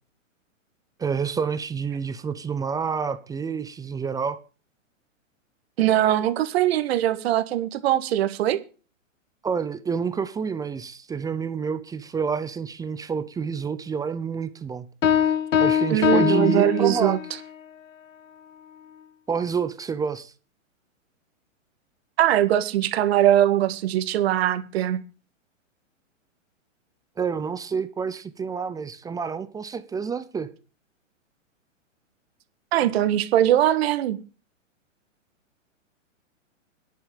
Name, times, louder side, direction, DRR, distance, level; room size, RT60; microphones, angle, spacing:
voice 1, 1.0-4.4 9.4-14.9 15.6-17.2 19.3-20.3 27.2-30.5, right 6 dB, 10° right, 0.7 m, -28 dB
voice 2, 5.8-8.6 15.9-17.2 22.2-25.0 32.7-34.2, right 12 dB, 50° right, 1.8 m, -21 dB
sound 1, 15.0-17.4, left 9 dB, 75° left, 1.2 m, -22 dB
10.5 x 8.9 x 7.4 m
hypercardioid pair, 125°, 39 cm